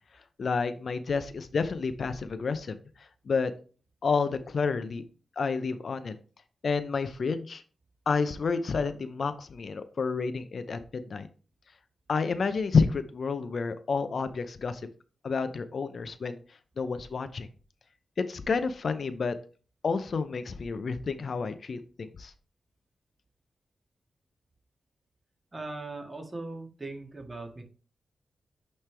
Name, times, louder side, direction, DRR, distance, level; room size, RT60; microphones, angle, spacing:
voice 1, 0.4-2.8 3.3-3.5 4.0-5.0 5.4-6.2 6.6-7.6 8.1-11.3 12.1-14.8 15.2-16.4 16.8-17.5 18.2-19.4 19.8-22.3, left 4 dB, 65° left, 11 dB, 0.6 m, -29 dB
voice 2, 25.5-27.6, right 2 dB, 30° right, 2 dB, 1.8 m, -39 dB
8.9 x 3.2 x 3.3 m, 0.38 s
cardioid pair, 65°, 0 cm